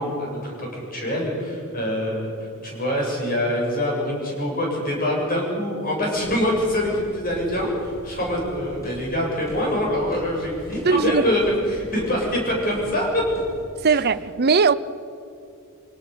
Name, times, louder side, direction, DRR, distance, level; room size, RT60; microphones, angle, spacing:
voice 1, 0.0-2.3 2.6-11.4 11.7-13.2 13.8-14.0, left 1 dB, 40° left, 7.5 m, -25 dB
sound 1, 6.1-13.7, equal, 15° left, 7.3 m, -41 dB
voice 2, 10.8-11.3 13.8-14.7, right 5 dB, 50° right, 0.7 m, -19 dB
26.5 x 18.0 x 7.0 m
head